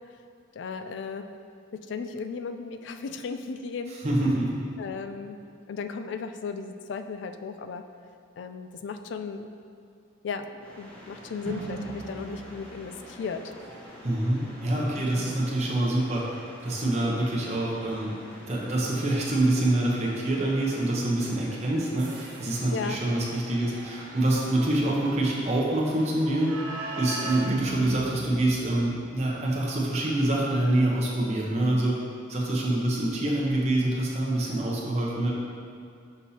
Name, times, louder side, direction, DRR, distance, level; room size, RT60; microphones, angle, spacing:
voice 1, 0.6-1.3 1.9-3.9 4.8-5.4 5.7-7.8 8.4-9.5 10.2-13.4 15.0-15.4 22.7-23.0, left 5 dB, 60° left, 8 dB, 0.3 m, -35 dB
voice 2, 3.9-4.7 14.0-16.2 16.6-18.1 18.5-26.5 27.0-32.0 32.3-35.3, right 1 dB, 35° right, -4 dB, 0.8 m, -26 dB
sound 1, 10.6-27.8, left 1 dB, 5° left, 0.8 m, -48 dB
sound 2, 11.5-29.2, right 2 dB, 75° right, 0.8 m, -42 dB
6.2 x 5.6 x 2.8 m, 2.4 s
head